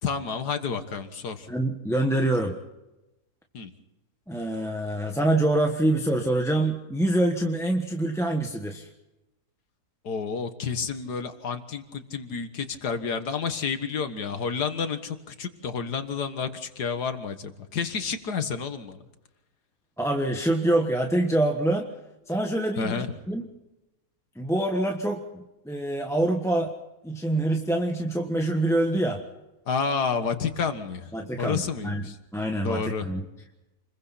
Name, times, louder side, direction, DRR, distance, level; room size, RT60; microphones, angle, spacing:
voice 1, 0.0-1.5 3.5-3.7 10.0-19.1 22.8-23.1 29.7-31.1 31.4-32.2 32.6-33.1, left 5 dB, 90° left, 8 dB, 2.1 m, -30 dB
voice 2, 1.5-2.6 4.3-8.9 20.0-21.9 22.3-23.5 24.3-26.7 27.0-29.2 31.1-33.2, right 1 dB, ahead, 2 dB, 1.2 m, -25 dB
28.5 x 22.0 x 4.2 m, 0.98 s
omnidirectional pair, 1.7 m